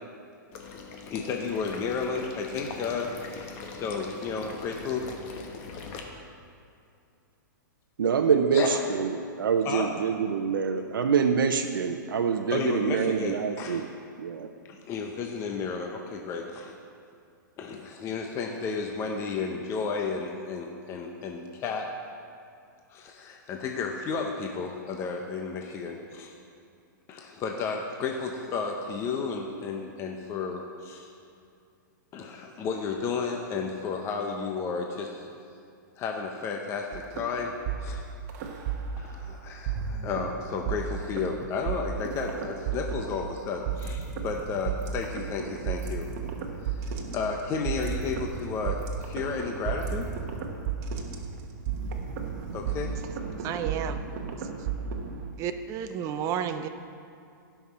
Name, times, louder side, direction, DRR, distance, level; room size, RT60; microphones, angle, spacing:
Water / Liquid, 0.5-6.0, left 4 dB, 40° left, 1.3 m, -41 dB
voice 1, 1.1-5.1 8.5-8.8 9.6-9.9 12.5-13.8 14.7-16.7 17.6-21.9 22.9-26.3 27.1-31.1 32.1-35.3 36.0-37.5 37.8-38.0 39.0-46.1 46.6-46.8 47.1-50.1 51.7-51.9 52.5-52.9, left 5 dB, 25° left, 2 dB, 0.8 m, -32 dB
voice 2, 8.0-13.8 14.2-14.5, right 6 dB, 85° right, 5 dB, 0.7 m, -25 dB
sound 1, 36.9-39.3 39.7-55.3, right 6 dB, 50° right, 1.2 m, -33 dB
voice 3, 53.4-54.0 55.4-56.7, right 8 dB, 30° right, 8 dB, 0.6 m, -32 dB
16.5 x 5.9 x 4.2 m, 2.5 s
hypercardioid pair, 140°, 11 cm